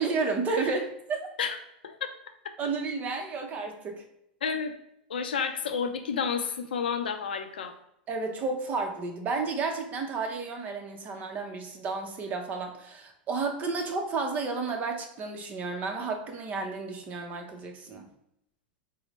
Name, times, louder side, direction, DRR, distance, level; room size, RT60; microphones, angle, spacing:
voice 1, 0.0-1.2 2.6-4.0 8.1-18.1, right 4 dB, 30° right, 3 dB, 0.7 m, -32 dB
voice 2, 4.4-4.7 5.1-7.7, left 6 dB, 90° left, 7 dB, 0.4 m, -31 dB
4.2 x 2.0 x 3.0 m, 0.78 s
hypercardioid pair, 115°, 5 cm